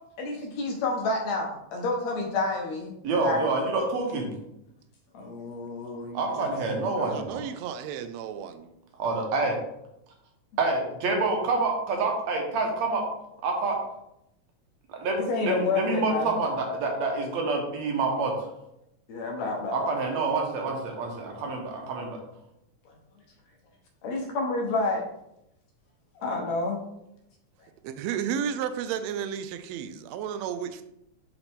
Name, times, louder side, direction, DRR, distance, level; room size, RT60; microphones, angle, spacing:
voice 1, 0.2-2.9 3.2-3.6 5.1-6.5 6.7-7.1 9.5-9.6 15.2-16.3 19.1-19.9 22.9-23.0 24.0-25.1 26.2-26.8, left 3 dB, 65° left, 2.2 m, -29 dB
voice 2, 3.0-4.3 6.1-7.4 9.0-9.6 10.6-13.0 13.4-13.8 14.9-15.2 15.4-18.3 19.7-22.2, right 3 dB, 65° right, 2.2 m, -27 dB
voice 3, 7.0-8.7 27.8-30.8, right 8 dB, 85° right, 1.5 m, -33 dB
7.0 x 4.0 x 3.6 m
omnidirectional pair, 3.6 m